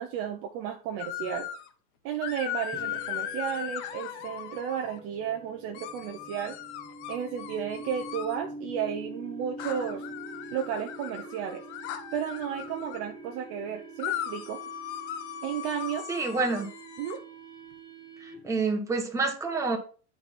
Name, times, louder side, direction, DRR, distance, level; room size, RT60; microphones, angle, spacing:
voice 1, 0.0-1.5 2.0-6.6 7.1-10.1 10.5-11.6 12.1-14.6 15.4-16.0 17.0-17.2, right 9 dB, 35° right, 3 dB, 0.7 m, -33 dB
sound 1, 1.0-1.7 2.2-5.0 5.7-8.4 9.6-13.0 14.0-17.2, left 11 dB, 50° left, 1.0 m, -38 dB
sound 2, 2.7-18.7, right 2 dB, 10° left, 0.8 m, -45 dB
voice 2, 16.1-16.7 18.4-19.8, right 3 dB, 5° right, 1 dB, 1.2 m, -27 dB
8.6 x 4.6 x 4.2 m, 0.38 s
supercardioid pair, 145°, 45 cm